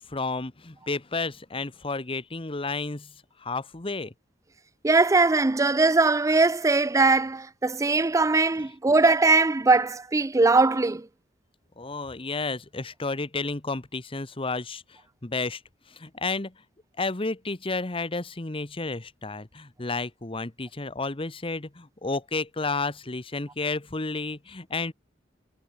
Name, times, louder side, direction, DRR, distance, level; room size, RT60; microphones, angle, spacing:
voice 1, 0.0-4.1 8.5-8.6 11.8-15.6 15.9-16.5 17.0-24.9, left 3 dB, 30° left, 1.1 m, -32 dB
voice 2, 4.8-11.1, right 3 dB, 20° right, 0.4 m, -21 dB
head